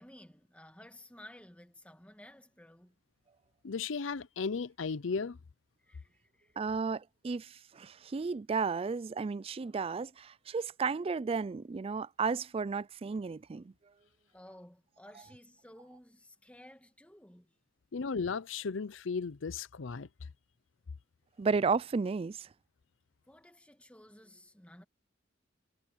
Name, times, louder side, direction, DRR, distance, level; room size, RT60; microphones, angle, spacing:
voice 1, 0.0-2.9 5.8-6.6 14.3-17.5 23.3-24.8, left 1 dB, 5° left, 2.2 m, -55 dB
voice 2, 3.6-5.4 17.9-20.1, left 5 dB, 85° left, 0.6 m, -35 dB
voice 3, 6.6-13.7 21.4-22.5, right 5 dB, 30° right, 0.3 m, -33 dB
head